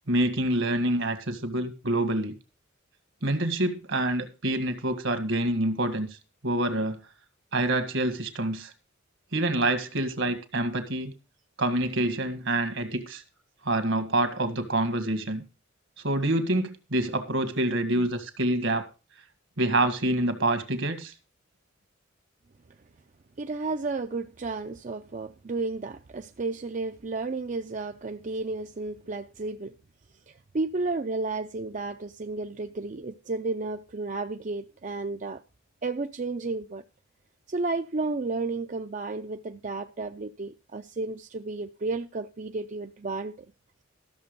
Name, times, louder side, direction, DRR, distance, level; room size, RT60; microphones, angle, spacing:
voice 1, 0.1-2.4 3.2-6.1 6.4-7.0 7.5-8.7 9.3-11.1 11.6-13.2 13.6-15.4 16.0-18.9 19.6-21.1, right 1 dB, 70° right, 1.9 m, -26 dB
voice 2, 23.4-29.7 30.3-35.4 35.8-36.8 37.5-43.4, right 3 dB, 40° right, 0.5 m, -32 dB
13.5 x 6.8 x 5.3 m
head